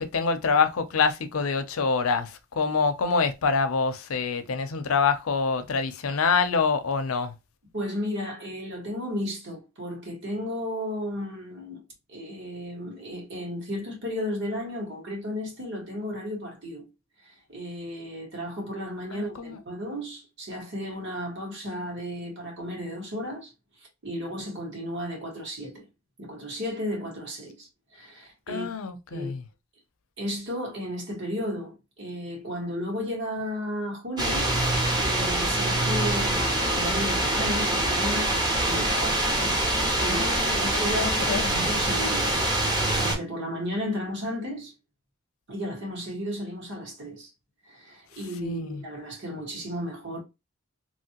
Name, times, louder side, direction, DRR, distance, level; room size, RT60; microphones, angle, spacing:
voice 1, 0.0-7.3 19.1-19.6 28.5-29.4 40.1-41.7 48.4-48.8, left 5 dB, 90° left, 0.6 m, -26 dB
voice 2, 7.7-11.8 12.1-16.9 17.2-23.5 24.0-25.9 26.2-28.7 29.1-29.3 30.2-34.5 35.0-42.3 42.9-44.7 45.5-47.3 47.7-50.2, equal, 60° right, 1.6 m, -34 dB
wind in the trees, 34.2-43.1, right 1 dB, 20° right, 0.7 m, -25 dB
2.9 x 2.7 x 2.8 m
head